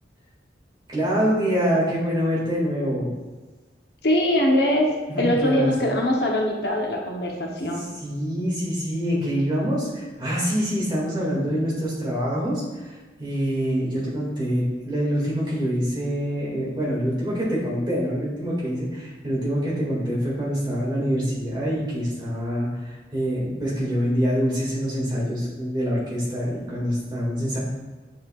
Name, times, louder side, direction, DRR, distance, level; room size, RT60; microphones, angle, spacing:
voice 1, 0.9-3.1 5.1-5.7 8.0-12.9 13.2-27.6, equal, 25° right, -7 dB, 2.1 m, -25 dB
voice 2, 4.0-4.9 5.2-7.9, left 1 dB, 65° left, 0 dB, 0.9 m, -22 dB
9.3 x 5.2 x 2.4 m, 1.2 s
head